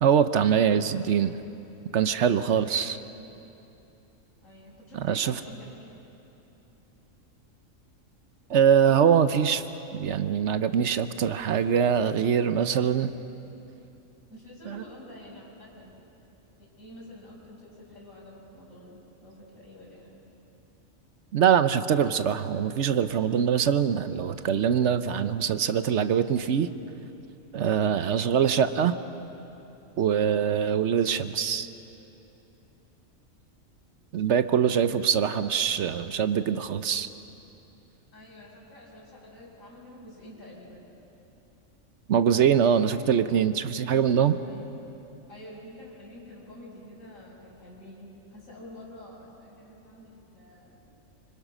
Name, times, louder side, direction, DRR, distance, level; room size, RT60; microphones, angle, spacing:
voice 1, 0.0-1.4 1.9-3.0 4.9-5.4 8.5-9.6 9.9-13.1 14.7-14.8 21.3-26.7 27.5-28.9 30.0-31.7 34.1-37.1 42.1-44.4, right 8 dB, 65° right, 11 dB, 1.0 m, -23 dB
voice 2, 2.5-2.8 4.4-6.0 14.3-16.0 16.6-20.2 34.6-35.1 38.1-40.9 44.4-44.7 45.3-50.9, left 1 dB, 75° left, -5 dB, 6.2 m, -48 dB
25.5 x 25.0 x 6.1 m, 2.9 s
omnidirectional pair, 1.4 m